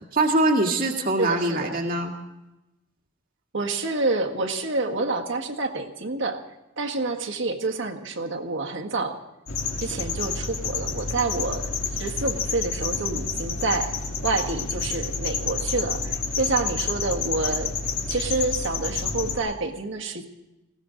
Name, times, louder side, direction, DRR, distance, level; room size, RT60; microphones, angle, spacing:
voice 1, 0.1-2.1, right 2 dB, 45° right, 2 dB, 1.8 m, -23 dB
voice 2, 1.2-1.7 3.5-6.4 6.8-9.2 9.8-13.9 14.2-17.7 18.1-20.2, right 3 dB, 60° right, 2 dB, 1.7 m, -28 dB
sound 1, 9.5-19.4, left 5 dB, 70° left, 2.2 m, -29 dB
20.5 x 16.5 x 3.9 m, 0.96 s
head